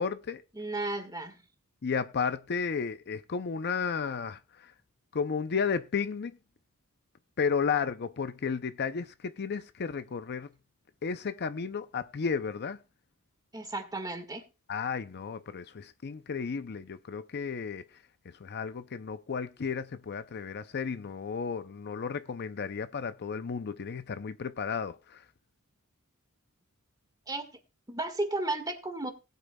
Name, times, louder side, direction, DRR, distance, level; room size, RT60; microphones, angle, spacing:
voice 1, 0.0-0.4 1.8-4.7 5.1-6.4 7.4-10.5 11.0-12.8 14.7-17.8 18.4-25.2, left 5 dB, 50° left, 0.5 m, -33 dB
voice 2, 0.5-1.4 13.5-14.4 27.3-27.5 27.9-29.1, right 2 dB, 20° right, 1.7 m, -33 dB
19.5 x 8.3 x 2.3 m
head